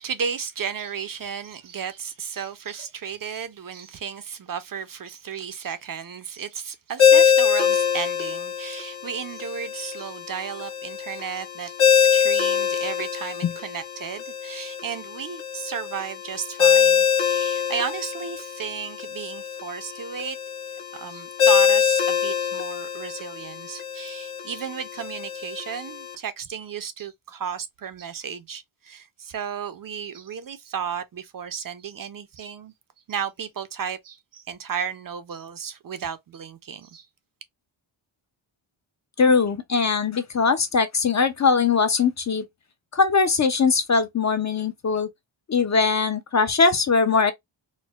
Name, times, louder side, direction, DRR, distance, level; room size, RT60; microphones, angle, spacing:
voice 1, 0.0-20.4 20.9-32.7 33.1-37.1, right 7 dB, 45° right, 0.4 m, -34 dB
Ringtone, 7.0-26.1, left 7 dB, 70° left, 1.1 m, -24 dB
voice 2, 39.2-42.4 42.9-45.1 45.5-47.3, left 5 dB, 40° left, 0.4 m, -21 dB
4.3 x 2.0 x 2.3 m
wide cardioid pair, 120°, 49 cm